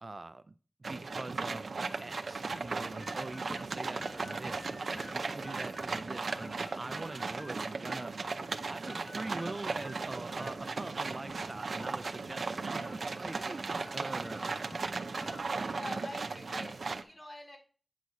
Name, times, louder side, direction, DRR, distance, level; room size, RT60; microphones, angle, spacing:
voice 1, 0.0-0.6 0.9-8.2 8.7-13.7 13.9-14.5, right 2 dB, 45° right, 0.4 m, -43 dB
sound 1, 0.8-17.0, right 4 dB, 90° right, 0.6 m, -37 dB
sound 2, 2.4-15.7, left 1 dB, 30° left, 1.0 m, -51 dB
voice 2, 13.2-13.6 15.7-17.6, left 1 dB, 45° left, 4.2 m, -46 dB
9.2 x 6.3 x 4.1 m
wide cardioid pair, 90°, 0 cm